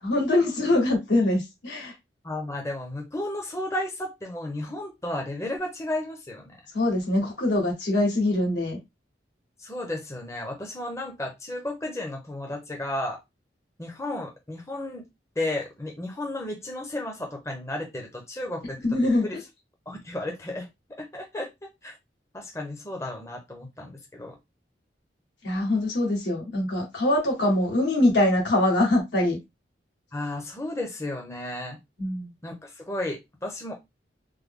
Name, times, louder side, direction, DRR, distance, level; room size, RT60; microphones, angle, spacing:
voice 1, 0.0-1.9 6.7-8.8 18.8-19.3 25.4-29.4 32.0-32.3, left 1 dB, 80° left, 1.7 m, -23 dB
voice 2, 2.2-6.5 9.6-13.2 13.8-15.0 15.4-18.8 19.2-19.4 19.9-20.7 21.0-21.5 21.8-21.9 22.3-24.4 30.1-31.8 32.4-33.7, left 1 dB, 15° left, 0.7 m, -33 dB
3.2 x 2.1 x 3.6 m
head